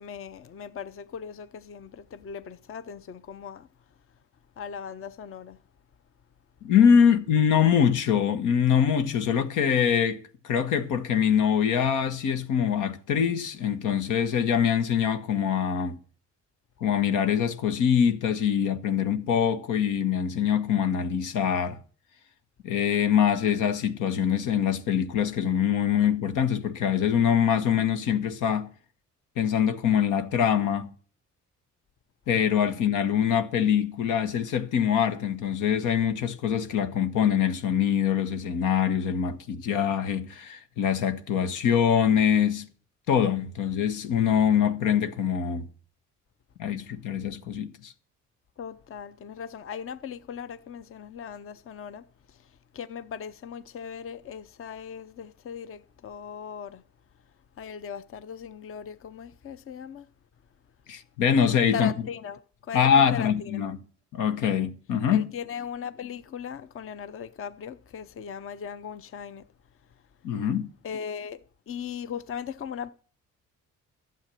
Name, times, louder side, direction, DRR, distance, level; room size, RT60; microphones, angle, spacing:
voice 1, 0.0-3.7 4.6-5.6 48.6-56.8 57.6-60.1 61.7-63.7 65.1-69.5 70.8-72.9, left 7 dB, 45° left, 0.7 m, -38 dB
voice 2, 6.6-16.0 16.8-21.8 22.6-28.7 29.4-30.9 32.3-42.7 43.1-45.7 46.6-47.9 60.9-61.9 62.7-63.8 64.1-65.3 70.2-70.7, left 8 dB, 90° left, 1.2 m, -24 dB
12.0 x 7.5 x 7.5 m
cardioid pair, 90°, 30 cm